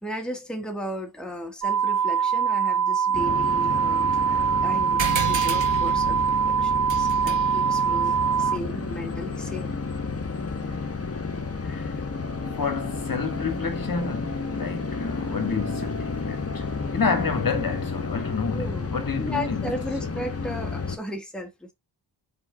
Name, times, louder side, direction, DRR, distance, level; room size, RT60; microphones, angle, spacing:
voice 1, 0.0-9.8 18.5-18.9 19.2-21.7, equal, ahead, 1.7 m, -35 dB
sound 1, 1.6-8.6, right 7 dB, 40° right, 2.1 m, -23 dB
sound 2, 3.1-21.0, left 4 dB, 30° left, 1.4 m, -31 dB
sound 3, 5.0-9.9, right 5 dB, 70° right, 1.6 m, -34 dB
voice 2, 11.6-12.0 12.5-16.6 16.9-19.7, left 5 dB, 45° left, 2.0 m, -29 dB
8.1 x 4.8 x 2.4 m
cardioid pair, 65°, 46 cm